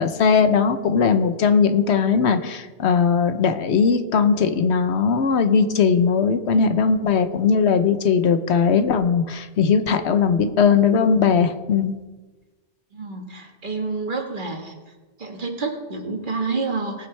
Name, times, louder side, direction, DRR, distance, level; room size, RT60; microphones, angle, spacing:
voice 1, 0.0-11.9, left 6 dB, 80° left, 9 dB, 1.1 m, -19 dB
voice 2, 12.9-14.7 15.2-17.1, right 4 dB, 50° right, 3 dB, 1.7 m, -28 dB
19.0 x 8.9 x 3.3 m, 1.2 s
omnidirectional pair, 1.1 m